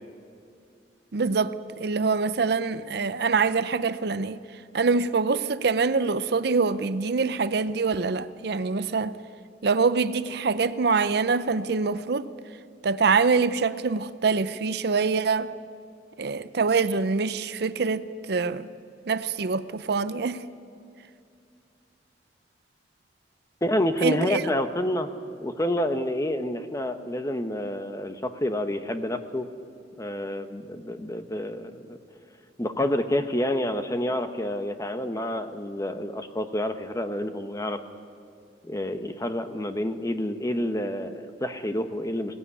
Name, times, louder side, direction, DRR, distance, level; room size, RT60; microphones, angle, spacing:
voice 1, 1.1-4.4 4.7-9.2 9.6-12.3 12.8-15.5 16.2-18.7 19.1-20.4 24.0-24.4, right 4 dB, 65° right, 0.6 m, -25 dB
voice 2, 23.6-25.1 25.4-29.5 30.0-32.0 32.6-37.8 38.6-42.4, left 1 dB, 20° left, 0.9 m, -28 dB
18.0 x 15.5 x 9.6 m
head